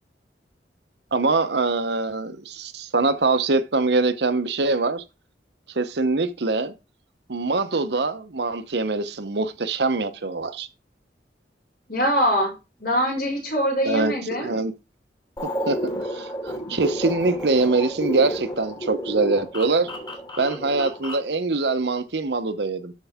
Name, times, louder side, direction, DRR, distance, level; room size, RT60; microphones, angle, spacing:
voice 1, 1.1-5.0 5.7-6.7 7.3-10.7 13.8-14.7 15.4-19.9 20.4-22.9, right 3 dB, 70° right, 0.9 m, -23 dB
voice 2, 11.9-12.5 12.8-14.5, equal, 55° left, 6.1 m, -23 dB
sound 1, 15.4-21.3, equal, 25° left, 2.9 m, -31 dB
13.0 x 4.7 x 3.6 m
head